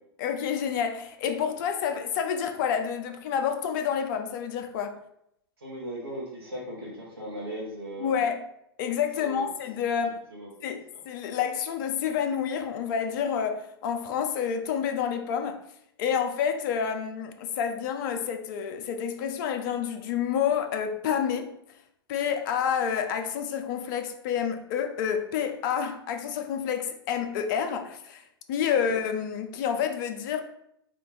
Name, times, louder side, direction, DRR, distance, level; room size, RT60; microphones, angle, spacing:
voice 1, 0.2-5.0 8.0-8.4 8.8-10.2 10.6-15.6 16.0-21.6 22.1-30.4, left 7 dB, 50° left, 0.7 m, -29 dB
voice 2, 5.6-8.2 9.2-9.5 10.3-10.5 28.8-28.9, right 1 dB, 90° right, 1.2 m, -38 dB
4.3 x 2.5 x 4.5 m
figure-of-eight pair, 100°, 13 cm